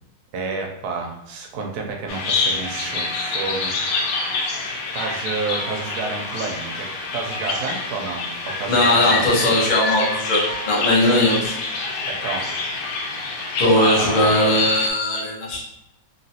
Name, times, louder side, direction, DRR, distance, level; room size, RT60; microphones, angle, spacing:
voice 1, 0.3-3.8 4.9-9.3 12.1-12.5 13.7-14.3, right 4 dB, 70° right, 1 dB, 1.0 m, -29 dB
Bird vocalization bird call bird song, 2.1-14.9, left 3 dB, 85° left, 1.3 m, -27 dB
voice 2, 8.7-11.6 13.6-15.6, left 1 dB, 65° left, -4 dB, 0.4 m, -19 dB
2.9 x 2.8 x 2.7 m, 0.85 s
omnidirectional pair, 2.0 m